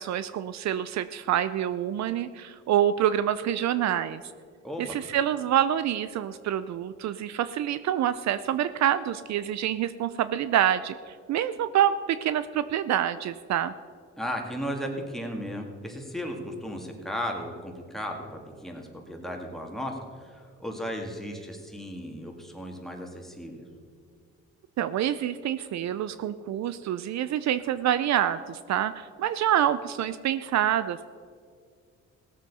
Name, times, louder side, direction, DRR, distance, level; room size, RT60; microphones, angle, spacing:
voice 1, 0.0-4.2 4.8-13.7 24.8-31.1, right 11 dB, 65° right, 14 dB, 0.5 m, -27 dB
voice 2, 4.6-5.0 14.2-23.6, equal, ahead, 1 dB, 2.2 m, -35 dB
17.0 x 7.6 x 5.5 m, 2.1 s
cardioid pair, 90°, 30 cm